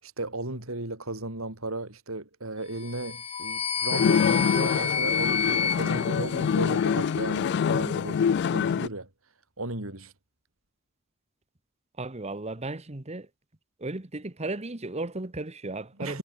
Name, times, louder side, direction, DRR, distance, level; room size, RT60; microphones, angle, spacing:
voice 1, 0.0-8.2 8.5-9.1 9.6-10.1 16.0-16.2, right 2 dB, 90° right, 4.8 m, -35 dB
sound 1, 2.8-7.1, left 6 dB, 30° left, 1.5 m, -30 dB
sound 2, 3.9-8.9, left 7 dB, 55° left, 0.3 m, -25 dB
voice 2, 12.0-13.3 13.8-16.2, right 2 dB, 30° right, 1.4 m, -35 dB
head